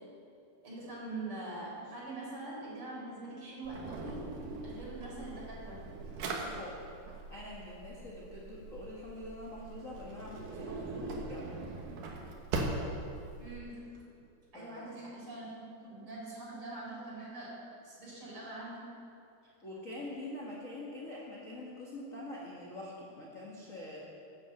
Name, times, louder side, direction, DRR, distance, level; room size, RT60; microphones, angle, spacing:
voice 1, 0.6-4.3 4.6-5.9 13.4-14.1 14.5-19.0, right 2 dB, 35° right, -5 dB, 4.8 m, -44 dB
Drawer open or close, 3.7-13.6, right 2 dB, 65° right, 2.9 m, -41 dB
voice 2, 6.3-6.8 7.3-11.6 14.5-14.9 19.6-24.0, left 1 dB, 40° left, -5 dB, 1.1 m, -45 dB
13.5 x 9.5 x 7.9 m, 2.6 s
omnidirectional pair, 4.5 m